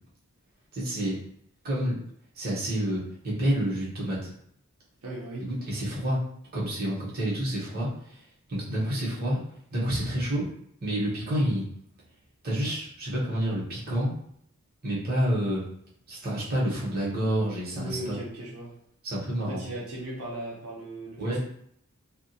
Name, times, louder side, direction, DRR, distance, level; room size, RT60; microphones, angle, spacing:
voice 1, 0.7-1.2 1.6-2.0 2.3-4.3 5.4-6.2 6.5-8.2 8.5-9.4 9.7-10.5 10.8-11.6 12.4-14.1 14.8-15.6 16.1-18.2 19.0-19.6 21.2-21.4, equal, 45° right, -6 dB, 0.8 m, -28 dB
voice 2, 5.0-5.5 17.7-18.7 19.4-21.4, right 1 dB, 85° right, -4 dB, 0.6 m, -37 dB
2.3 x 2.1 x 2.6 m, 0.68 s
head